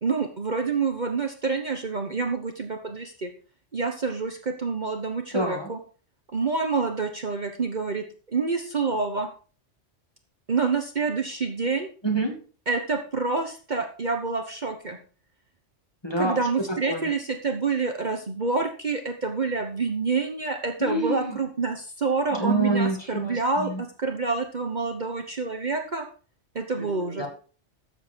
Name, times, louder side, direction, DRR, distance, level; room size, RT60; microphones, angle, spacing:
voice 1, 0.0-3.3 3.7-5.8 6.3-9.3 10.5-11.9 12.7-15.0 16.2-26.1 26.5-27.3, right 4 dB, 40° right, 4 dB, 1.2 m, -27 dB
voice 2, 5.3-5.7 12.0-12.4 16.0-16.4 16.7-17.0 20.8-21.4 22.3-23.8 26.8-27.3, right 2 dB, 20° left, 1 dB, 2.3 m, -27 dB
13.0 x 7.4 x 4.6 m, 0.39 s
omnidirectional pair, 1.3 m